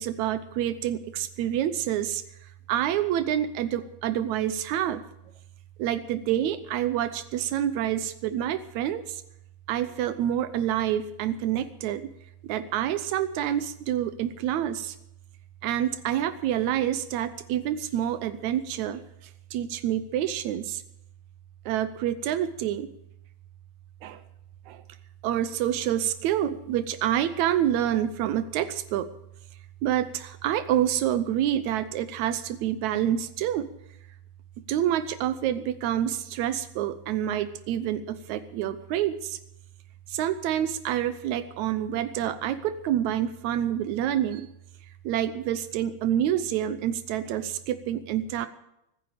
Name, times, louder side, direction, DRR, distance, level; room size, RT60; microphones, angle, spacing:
voice 1, 0.0-2.2 2.7-5.0 5.8-9.2 9.7-12.1 12.5-15.0 15.6-19.0 19.5-20.8 21.7-22.9 24.0-24.2 24.7-24.8 25.2-29.1 29.8-33.7 34.7-39.4 40.1-44.5 45.1-48.5, right 11 dB, 85° right, 12 dB, 2.1 m, -27 dB
23.5 x 10.0 x 5.0 m, 0.81 s
omnidirectional pair, 3.3 m